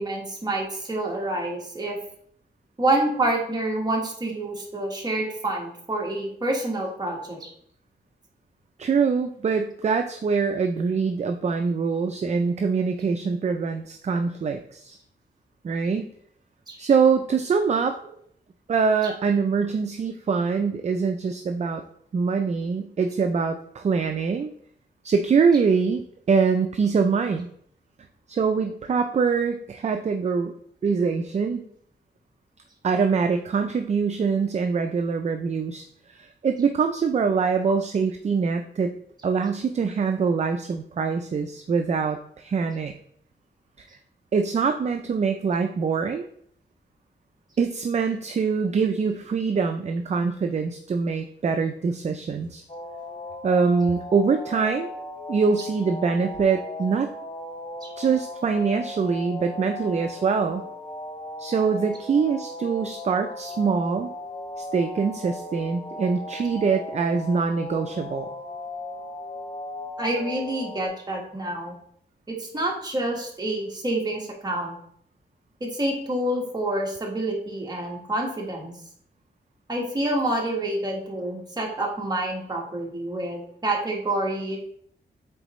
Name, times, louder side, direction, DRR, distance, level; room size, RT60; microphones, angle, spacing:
voice 1, 0.0-2.0 2.8-7.5 16.7-16.8 57.8-57.9 70.0-71.7 72.3-74.8 75.6-78.7 79.7-84.6, right 1 dB, 20° right, -1 dB, 1.5 m, -27 dB
voice 2, 8.8-15.0 15.6-16.1 16.8-18.0 18.7-21.8 22.1-24.5 25.0-26.0 26.3-27.5 28.3-30.5 30.8-31.7 32.8-38.9 39.2-42.9 44.3-46.3 47.6-52.6 53.4-54.9 55.3-57.1 58.0-60.6 61.4-64.1 64.6-68.3, right 5 dB, 40° right, 6 dB, 0.4 m, -24 dB
sound 1, 52.7-70.9, left 2 dB, 25° left, 0.8 m, -37 dB
7.8 x 3.9 x 3.1 m, 0.65 s
wide cardioid pair, 135°, 19 cm